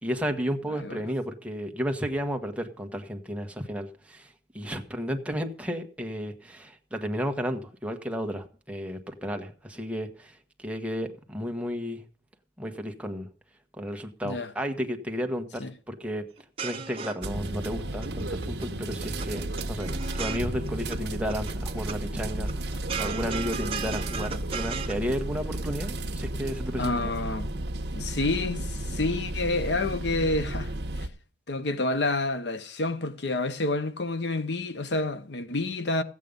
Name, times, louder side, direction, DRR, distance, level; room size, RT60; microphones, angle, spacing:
voice 1, 0.0-12.0 12.6-13.3 13.8-16.2 16.6-19.9 20.1-22.7 23.0-27.1, equal, 10° right, 1.4 m, -33 dB
sound 1, 16.4-17.7 18.0-18.7 18.9-21.0 21.3-22.0 22.3-25.0, right 5 dB, 35° right, 1.3 m, -36 dB
sound 2, 17.2-31.1, right 1 dB, 75° right, 1.1 m, -33 dB
voice 2, 26.8-27.5 28.0-31.1 31.5-36.0, left 2 dB, 80° left, 0.9 m, -29 dB
15.0 x 8.5 x 5.2 m
head